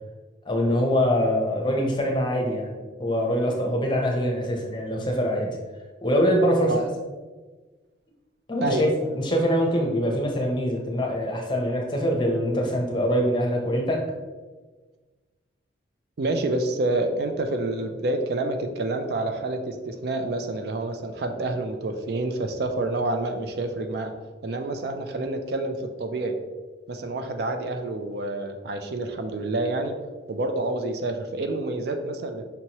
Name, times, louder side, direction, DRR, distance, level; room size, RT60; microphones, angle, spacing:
voice 1, 0.5-2.7 3.0-5.5 6.0-6.7 8.5-8.9 9.2-14.0, equal, 25° left, 0 dB, 0.7 m, -24 dB
voice 2, 16.2-24.1 24.4-26.4 26.9-29.9 30.3-32.4, right 2 dB, 55° right, 6 dB, 0.4 m, -28 dB
5.4 x 2.9 x 2.9 m, 1.3 s
head